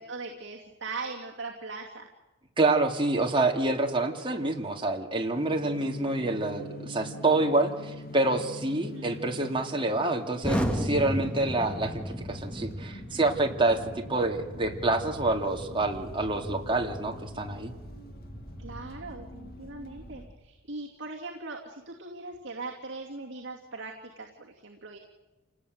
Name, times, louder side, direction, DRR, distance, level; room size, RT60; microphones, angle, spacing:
voice 1, 0.0-2.1 8.7-9.1 18.6-25.0, right 3 dB, 55° right, 0 dB, 2.7 m, -40 dB
voice 2, 2.6-17.7, right 2 dB, 25° right, 3 dB, 2.6 m, -27 dB
sound 1, 5.3-20.3, left 1 dB, 45° left, 2.1 m, -46 dB
Explosion, 10.4-20.4, equal, 5° left, 2.2 m, -36 dB
28.5 x 18.5 x 9.5 m, 1.1 s
head